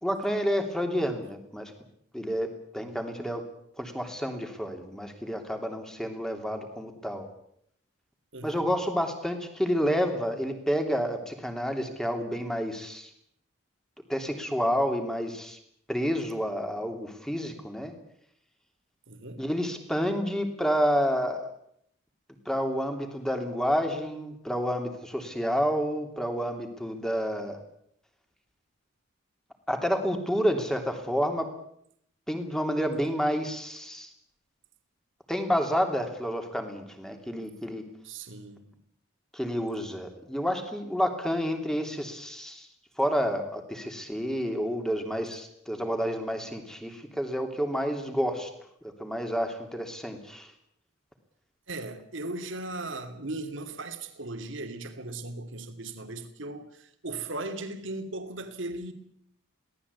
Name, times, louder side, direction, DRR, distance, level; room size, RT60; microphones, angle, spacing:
voice 1, 0.0-1.7 2.1-3.4 3.8-7.3 8.4-13.1 14.1-15.6 15.9-17.9 19.4-21.5 22.4-27.6 29.7-31.5 32.3-34.1 35.3-37.9 39.3-42.7 43.0-48.5 49.0-50.5, equal, 5° left, 3.0 m, -29 dB
voice 2, 8.3-8.6 19.1-19.4 38.0-38.8 51.7-58.9, right 2 dB, 65° right, 2.7 m, -37 dB
23.5 x 18.0 x 8.4 m
head